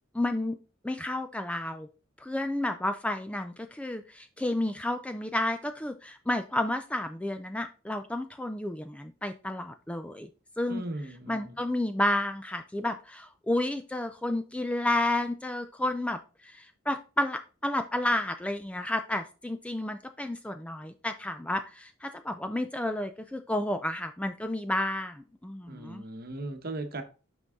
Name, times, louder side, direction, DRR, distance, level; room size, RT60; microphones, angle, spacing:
voice 1, 0.1-0.6 0.8-1.9 2.2-10.3 10.6-10.8 11.3-26.0, left 1 dB, 5° left, 0.3 m, -31 dB
voice 2, 10.7-11.6 25.7-27.0, right 2 dB, 50° right, 1.0 m, -38 dB
6.0 x 5.4 x 3.6 m
head